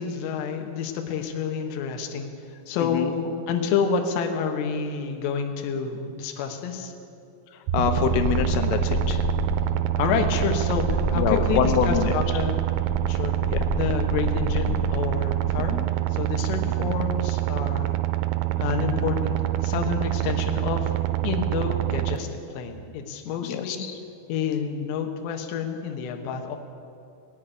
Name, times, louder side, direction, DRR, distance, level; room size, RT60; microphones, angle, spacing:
voice 1, 0.0-2.3 2.7-6.9 10.0-12.6 13.1-13.4 13.8-15.8 16.1-18.0 18.6-20.9 21.2-22.3 22.5-23.8 24.3-26.6, left 6 dB, 70° left, 4 dB, 3.1 m, -28 dB
voice 2, 2.8-3.1 7.7-9.3 11.1-12.1 13.5-13.6 15.6-15.9 23.5-23.9, left 8 dB, 90° left, 6 dB, 3.5 m, -25 dB
sound 1, 7.7-15.6, left 1 dB, 35° left, 2.9 m, -30 dB
sound 2, 7.7-22.2, right 16 dB, 85° right, 2.7 m, -26 dB
19.0 x 6.6 x 10.0 m, 2.4 s
omnidirectional pair, 5.7 m